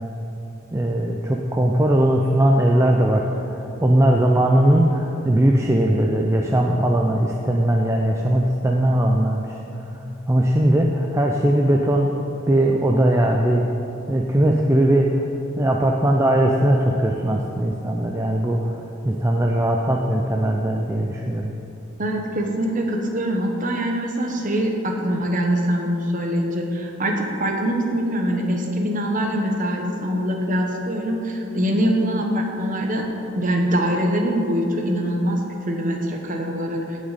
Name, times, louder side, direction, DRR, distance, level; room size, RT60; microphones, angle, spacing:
voice 1, 0.7-9.6 10.3-12.2 12.5-13.7 14.1-15.2 15.6-18.8 19.0-21.5, right 1 dB, 15° right, 0 dB, 0.5 m, -19 dB
voice 2, 22.0-33.1 33.3-37.0, equal, 40° right, 2 dB, 1.1 m, -23 dB
17.5 x 6.3 x 4.1 m, 2.9 s
head